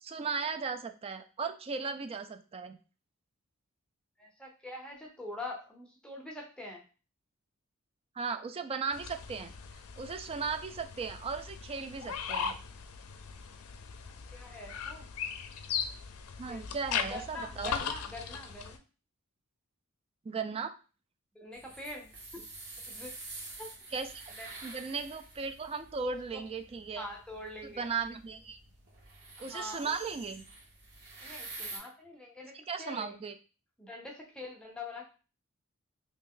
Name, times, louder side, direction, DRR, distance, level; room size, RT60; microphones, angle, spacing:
voice 1, 0.0-2.8 8.2-9.5 10.0-12.5 16.4-17.7 20.3-20.7 23.9-24.2 24.6-27.1 27.8-28.6 29.4-30.4 32.7-33.3, right 5 dB, 25° right, 8 dB, 0.3 m, -36 dB
voice 2, 4.2-6.8 14.3-15.1 16.5-16.7 17.1-18.8 21.3-22.4 22.9-23.2 23.6-23.7 24.4-24.5 26.0-26.4 27.0-27.9 29.4-29.9 31.2-32.5 32.8-33.2 33.8-35.0, left 2 dB, 5° left, -1 dB, 0.6 m, -44 dB
sound 1, 8.9-18.8, left 7 dB, 85° left, 0.4 m, -39 dB
sound 2, 21.5-31.8, right 2 dB, 55° right, 1.2 m, -48 dB
3.1 x 2.6 x 3.7 m, 0.35 s
head